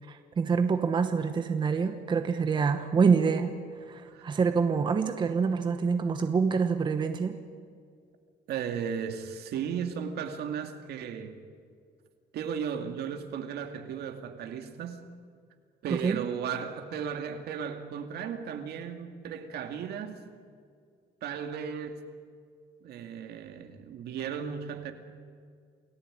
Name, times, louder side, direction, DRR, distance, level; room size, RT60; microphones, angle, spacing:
voice 1, 0.1-3.5 3.9-7.4 15.9-16.2, right 5 dB, 25° right, 7 dB, 1.1 m, -26 dB
voice 2, 8.5-11.4 12.3-15.1 15.8-20.2 21.2-22.1 22.8-24.9, right 7 dB, 70° right, 6 dB, 2.3 m, -35 dB
28.5 x 17.5 x 8.9 m, 2.1 s
cardioid pair, 175°, 18 cm